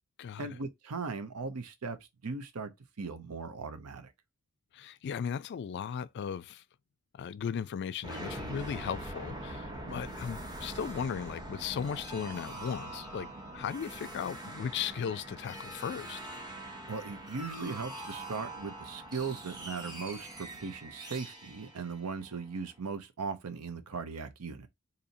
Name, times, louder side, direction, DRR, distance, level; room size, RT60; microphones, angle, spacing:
voice 1, 0.4-2.7 3.0-4.1 9.7-10.0 16.9-24.7, right 4 dB, 85° right, 0.7 m, -38 dB
voice 2, 4.7-6.6 7.2-16.2, left 7 dB, 50° left, 0.3 m, -37 dB
sound 1, 8.0-22.7, right 1 dB, 20° right, 0.9 m, -43 dB
4.1 x 2.7 x 2.6 m
head